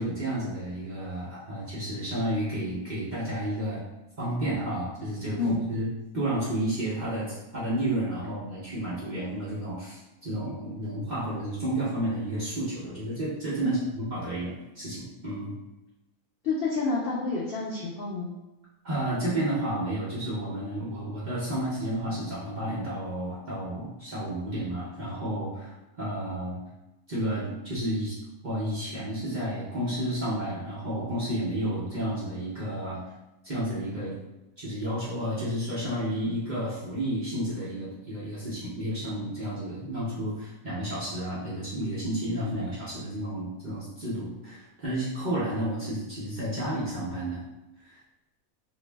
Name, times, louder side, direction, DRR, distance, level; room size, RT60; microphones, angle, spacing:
voice 1, 0.0-3.8 4.2-5.9 6.1-15.5 18.8-26.6 27.1-28.2 28.4-33.0 33.4-34.1 34.6-47.4 47.8-48.0, right 1 dB, 50° right, -9 dB, 0.6 m, -31 dB
voice 2, 16.4-18.3, left 3 dB, 85° left, -4 dB, 0.5 m, -29 dB
2.6 x 2.0 x 3.2 m, 1.0 s
omnidirectional pair, 1.5 m